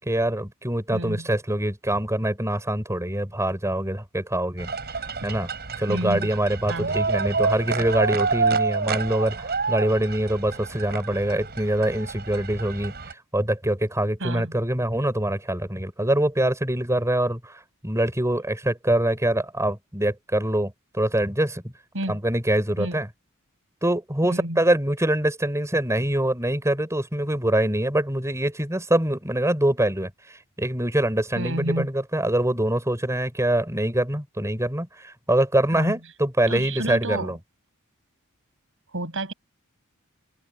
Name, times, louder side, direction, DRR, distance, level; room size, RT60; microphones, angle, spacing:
voice 1, 0.0-4.7 5.2-5.5 5.8-21.6 22.1-23.1 23.8-37.4, right 1 dB, 15° right, 5.2 m, -24 dB
voice 2, 0.9-1.3 5.9-6.3 6.7-7.0 14.2-14.6 21.9-22.2 22.8-23.0 24.2-24.7 31.4-31.9 35.8-35.9 36.5-37.4 38.9-39.3, right 1 dB, 60° right, 6.9 m, -30 dB
sound 1, 4.6-13.1, right 4 dB, 45° right, 7.2 m, -28 dB
open air
head